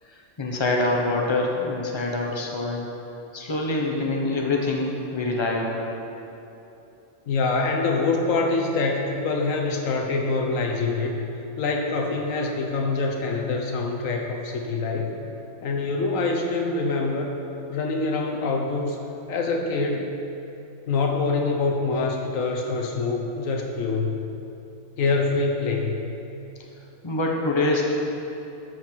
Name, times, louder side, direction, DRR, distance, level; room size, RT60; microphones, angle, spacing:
voice 1, 0.4-2.9 3.3-5.8 27.0-27.9, left 2 dB, 25° left, -1 dB, 1.1 m, -25 dB
voice 2, 7.3-11.2 11.6-15.1 15.6-17.3 17.7-19.0 19.3-20.2 20.9-24.2 25.0-26.0, left 3 dB, 90° left, 1 dB, 1.3 m, -25 dB
13.0 x 6.4 x 4.6 m, 2.8 s
omnidirectional pair, 1.3 m